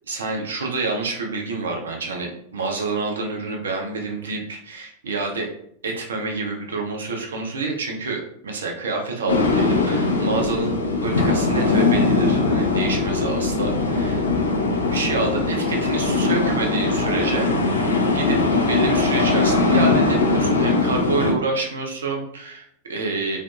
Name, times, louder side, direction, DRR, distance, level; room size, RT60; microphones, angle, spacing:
voice 1, 0.1-5.5 5.8-10.7 11.0-14.2 14.9-17.8 18.1-18.4 18.7-23.4, right 3 dB, 65° right, 1 dB, 0.5 m, -27 dB
sound 1, 9.3-21.3, left 3 dB, 75° left, 0.4 m, -20 dB
2.6 x 2.4 x 2.4 m, 0.70 s
figure-of-eight pair, 90°, 0 cm